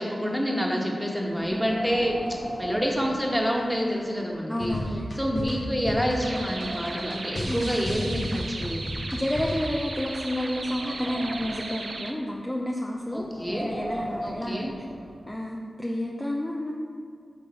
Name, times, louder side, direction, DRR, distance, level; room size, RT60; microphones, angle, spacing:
voice 1, 0.0-2.2 2.6-4.8 5.2-8.8 13.1-13.7 14.2-14.7, equal, 5° right, -1 dB, 1.5 m, -28 dB
Wind, 1.3-3.9 4.3-4.4 5.1-5.2 5.7-7.3 8.1-9.7 10.2-11.8 13.1-15.2, right 1 dB, 45° right, 1.4 m, -38 dB
sound 1, 4.5-9.8, left 1 dB, 65° left, 1.4 m, -33 dB
voice 2, 4.5-5.1 7.4-7.8 9.1-14.7 15.3-16.7, left 1 dB, 15° left, -2 dB, 0.7 m, -30 dB
sound 2, 6.2-12.1, right 2 dB, 65° right, 0.6 m, -37 dB
10.5 x 3.9 x 4.3 m, 2.2 s
cardioid pair, 45°, 0 cm